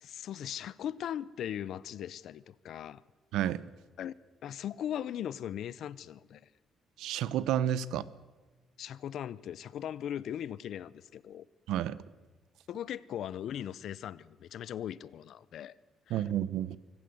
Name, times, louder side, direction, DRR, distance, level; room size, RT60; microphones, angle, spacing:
voice 1, 0.0-3.0 4.0-4.1 4.4-6.4 8.8-11.5 12.7-15.8 16.1-16.2, left 10 dB, 55° left, 0.6 m, -39 dB
voice 2, 7.0-8.0 11.7-12.0 16.1-16.8, right 11 dB, 80° right, 0.8 m, -30 dB
24.5 x 15.0 x 7.9 m
cardioid pair, 175°, 0 cm